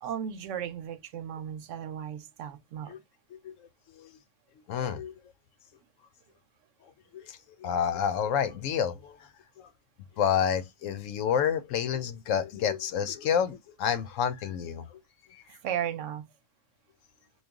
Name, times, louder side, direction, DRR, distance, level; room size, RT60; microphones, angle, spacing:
voice 1, 0.0-2.9 15.6-16.3, right 9 dB, 75° right, 0.9 m, -35 dB
voice 2, 4.7-5.1 7.1-9.1 10.2-14.9, left 8 dB, 90° left, 1.0 m, -29 dB
3.2 x 2.3 x 3.4 m
omnidirectional pair, 1.3 m